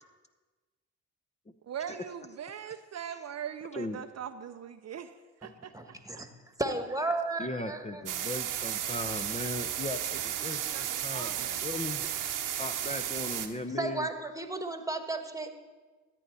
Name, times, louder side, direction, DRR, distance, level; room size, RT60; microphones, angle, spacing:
voice 1, 1.6-5.1 5.4-6.3 10.1-11.6, right 8 dB, 50° right, 9 dB, 0.6 m, -41 dB
voice 2, 5.7-6.3 6.6-8.0 13.8-15.5, right 2 dB, 10° right, 7 dB, 1.5 m, -33 dB
voice 3, 7.4-12.1 12.6-14.1, left 2 dB, 20° left, 8 dB, 0.8 m, -38 dB
sound 1, 8.1-13.5, right 10 dB, 65° right, 1.0 m, -34 dB
13.5 x 9.0 x 4.2 m, 1.3 s
hypercardioid pair, 50°, 34 cm